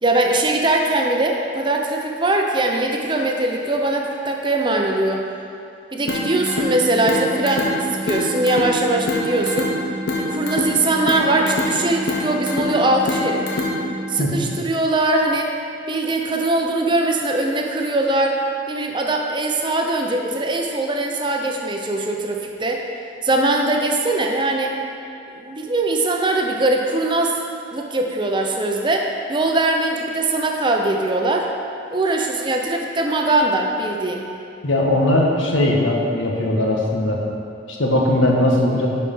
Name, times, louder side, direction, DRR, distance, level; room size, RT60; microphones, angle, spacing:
voice 1, 0.0-5.2 5.9-9.7 10.2-13.4 14.1-15.5 15.9-18.4 18.7-22.8 23.2-24.7 25.3-27.4 27.7-31.5 31.9-34.3, right 2 dB, 25° right, 2 dB, 0.7 m, -21 dB
sound 1, 6.1-14.1, left 1 dB, 60° left, 1.2 m, -25 dB
voice 2, 34.6-37.2 37.7-38.9, left 1 dB, 85° left, -2 dB, 1.4 m, -19 dB
10.5 x 4.8 x 5.5 m, 2.6 s
head